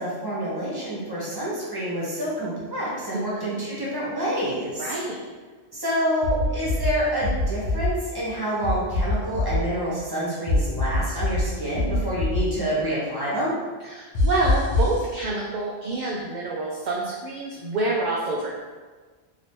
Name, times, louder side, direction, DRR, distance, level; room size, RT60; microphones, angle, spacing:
voice 1, 0.0-4.9 5.7-13.5, equal, 20° right, -8 dB, 1.0 m, -27 dB
voice 2, 3.1-3.6 4.8-5.2 13.8-18.5, right 2 dB, 60° right, -3 dB, 0.5 m, -27 dB
sound 1, 6.2-6.9 7.2-7.9 8.6-9.6 10.5-11.4 11.7-12.4 14.1-14.9, left 2 dB, 85° left, 1.0 m, -23 dB
3.2 x 2.9 x 2.9 m, 1.4 s
omnidirectional pair, 1.1 m